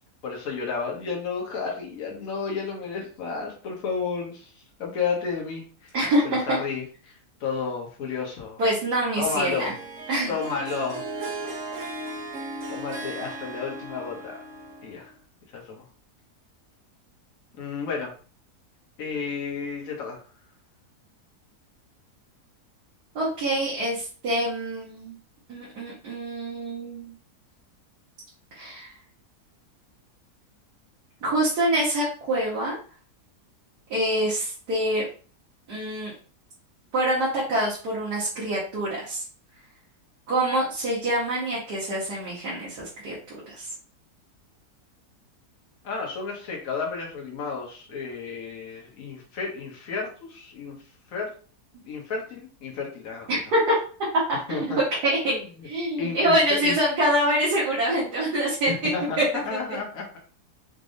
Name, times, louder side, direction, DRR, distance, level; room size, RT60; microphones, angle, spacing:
voice 1, 0.2-4.5 4.8-6.0 6.2-8.6 9.2-9.7 10.3-11.0 12.7-14.4 14.8-15.1 15.5-15.8 17.5-18.1 19.0-20.2 45.8-50.8 51.1-51.3 51.8-53.4 54.5-54.8 55.3-55.7 56.0-56.8 58.7-60.1, left 5 dB, 60° left, -1 dB, 1.5 m, -32 dB
voice 2, 5.9-6.6 8.6-9.7 10.1-10.3 23.2-25.2 25.5-27.1 28.5-28.9 31.2-32.8 33.9-35.1 35.7-36.1 36.9-39.2 40.3-43.1 43.5-43.7 53.3-53.7 54.3-54.7 55.0-55.4 55.6-58.9 59.2-59.3, right 1 dB, 80° right, -7 dB, 1.9 m, -25 dB
Harp, 9.3-15.1, right 2 dB, 60° right, 1.2 m, -36 dB
5.2 x 3.3 x 2.6 m, 0.40 s
omnidirectional pair, 1.7 m